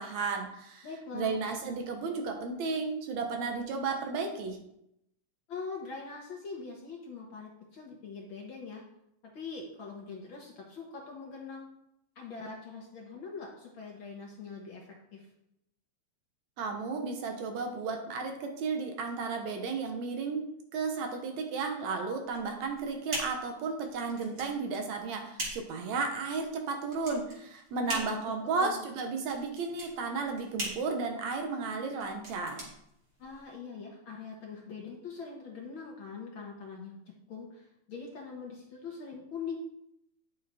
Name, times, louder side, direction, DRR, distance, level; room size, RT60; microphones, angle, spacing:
voice 1, 0.0-0.9 1.1-4.6 16.6-20.5 20.7-32.6, right 4 dB, 75° right, 4 dB, 2.4 m, -33 dB
voice 2, 0.8-1.4 5.5-8.8 9.3-11.7 12.1-15.3 27.8-28.8 33.2-36.9 37.3-39.5, left 5 dB, 55° left, -1 dB, 1.6 m, -43 dB
sound 1, 22.3-33.6, right 1 dB, 35° right, 3.0 m, -42 dB
9.8 x 6.6 x 4.2 m, 0.79 s
omnidirectional pair, 3.3 m